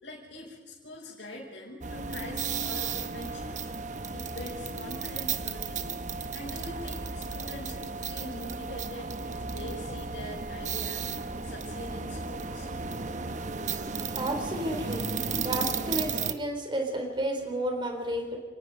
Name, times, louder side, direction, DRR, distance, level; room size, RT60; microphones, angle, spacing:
voice 1, 0.0-3.7 4.1-5.9 6.3-11.1 11.4-12.7, left 1 dB, 70° left, -6 dB, 5.3 m, -43 dB
sound 1, 1.8-16.3, right 5 dB, 45° right, 1.0 m, -34 dB
voice 2, 14.2-15.1 15.4-18.4, right 1 dB, 25° right, 3 dB, 3.8 m, -31 dB
29.5 x 18.0 x 5.3 m, 1.3 s
head